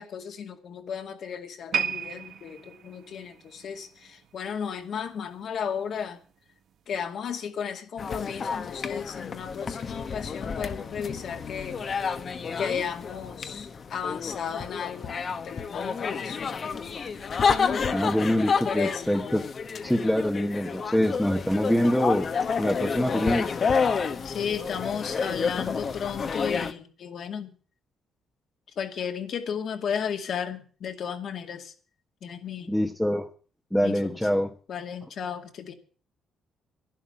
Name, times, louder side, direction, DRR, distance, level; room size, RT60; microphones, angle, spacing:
voice 1, 0.0-6.2 6.9-11.8 12.6-16.6 18.7-19.0 24.2-27.5 28.8-31.7 32.2-32.7 33.8-34.2 34.7-35.7, left 7 dB, 55° left, 2.2 m, -34 dB
sound 1, 1.7-5.0 5.3-5.6 6.3-6.4, right 7 dB, 60° right, 1.0 m, -34 dB
sound 2, 8.0-26.7, left 5 dB, 40° left, 1.2 m, -30 dB
voice 2, 17.9-19.4 19.8-22.3 22.6-23.5 32.7-33.3 33.7-34.5, equal, ahead, 1.2 m, -24 dB
11.5 x 11.5 x 7.5 m
cardioid pair, 125°, 0 cm